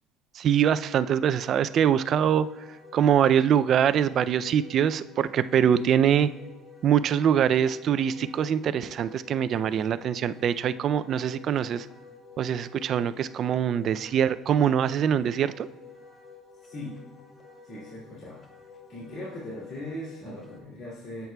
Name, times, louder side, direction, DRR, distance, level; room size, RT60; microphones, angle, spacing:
voice 1, 0.3-2.5 2.9-6.3 6.8-11.9 12.4-15.7, right 9 dB, 45° right, 14 dB, 0.3 m, -23 dB
Wind instrument woodwind instrument, 1.2-20.6, left 5 dB, 25° left, 1.1 m, -50 dB
voice 2, 16.6-17.0 17.6-18.4 18.9-21.3, left 1 dB, 50° left, -9 dB, 2.4 m, -39 dB
10.5 x 8.0 x 2.2 m, 1.1 s
cardioid pair, 135°, 0 cm